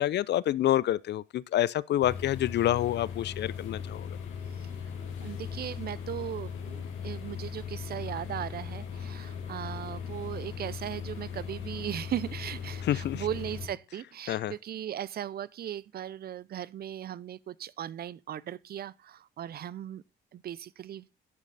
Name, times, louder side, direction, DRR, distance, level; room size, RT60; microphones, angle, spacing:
voice 1, 0.0-4.1 12.8-13.2 14.3-14.5, left 12 dB, 60° left, 0.4 m, -27 dB
sound 1, 2.0-13.7, left 7 dB, 85° left, 2.4 m, -38 dB
voice 2, 5.2-20.0 20.3-21.1, right 10 dB, 50° right, 0.5 m, -38 dB
11.0 x 7.3 x 4.0 m
cardioid pair, 90°, 20 cm